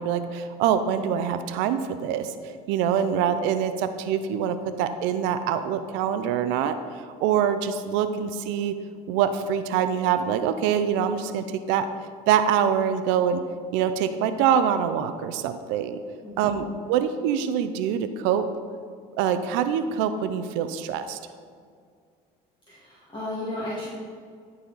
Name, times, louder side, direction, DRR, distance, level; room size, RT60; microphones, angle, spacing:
voice 1, 0.0-2.3 2.7-6.8 7.0-8.7 9.1-11.9 12.3-13.4 13.7-16.0 16.4-18.4 19.2-21.2, right 8 dB, 80° right, 10 dB, 0.5 m, -24 dB
voice 2, 16.2-16.7 22.7-23.9, left 1 dB, 25° left, -8 dB, 2.0 m, -34 dB
11.5 x 4.2 x 4.0 m, 2.1 s
supercardioid pair, 85°, 19 cm